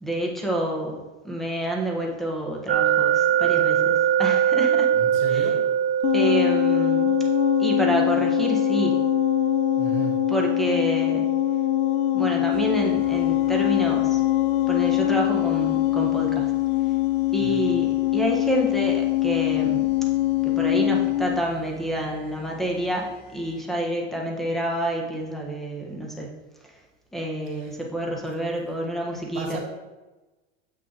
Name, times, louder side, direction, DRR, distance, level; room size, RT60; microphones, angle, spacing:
voice 1, 0.0-4.9 5.3-5.4 6.1-7.1 7.6-9.0 10.3-11.2 12.1-14.2 14.7-16.5 17.3-19.9 20.4-26.3 27.1-29.6, right 1 dB, ahead, -1 dB, 1.4 m, -28 dB
sound 1, 2.7-15.6, right 9 dB, 35° right, 0.6 m, -25 dB
voice 2, 4.9-5.6 9.8-10.1 17.4-17.6 27.4-27.8 28.1-28.3 29.3-29.6, right 6 dB, 60° right, -1 dB, 2.4 m, -35 dB
sound 2, 6.0-21.4, left 16 dB, 80° left, 0.5 m, -23 dB
sound 3, 12.5-23.9, left 1 dB, 45° left, 2.4 m, -49 dB
7.7 x 6.2 x 3.0 m, 1.2 s
supercardioid pair, 110°, 31 cm